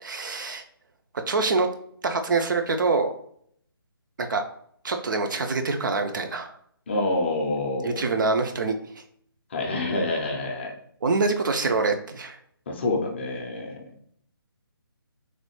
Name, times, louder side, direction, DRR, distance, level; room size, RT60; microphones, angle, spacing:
voice 1, 0.0-0.6 1.3-1.7 2.0-3.1 4.2-4.4 4.8-6.5 7.8-9.0 11.0-12.4, right 3 dB, 55° right, 6 dB, 0.4 m, -25 dB
voice 2, 6.9-8.1 9.5-10.8 12.7-13.9, left 2 dB, 30° left, 1 dB, 0.4 m, -27 dB
3.1 x 2.2 x 3.0 m, 0.65 s
figure-of-eight pair, 150°, 13 cm